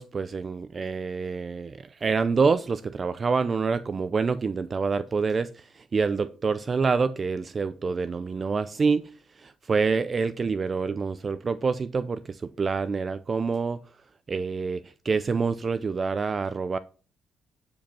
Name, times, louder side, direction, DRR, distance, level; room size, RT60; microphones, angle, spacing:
voice 1, 0.0-13.8 14.3-16.8, right 5 dB, 35° right, 0.5 m, -27 dB
11.5 x 5.2 x 5.4 m
cardioid pair, 90°, 0 cm